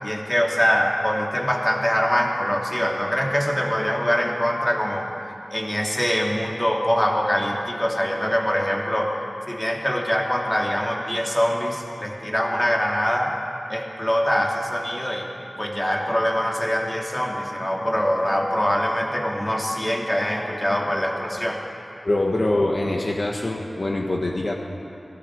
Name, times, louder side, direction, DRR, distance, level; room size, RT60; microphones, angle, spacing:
voice 1, 0.0-5.1 5.5-9.1 9.5-13.4 13.7-15.3 15.6-21.6, equal, 15° left, -1 dB, 2.9 m, -23 dB
voice 2, 22.0-24.5, left 2 dB, 50° left, 0 dB, 1.8 m, -24 dB
27.5 x 20.0 x 4.9 m, 2.7 s
wide cardioid pair, 75°, 0 cm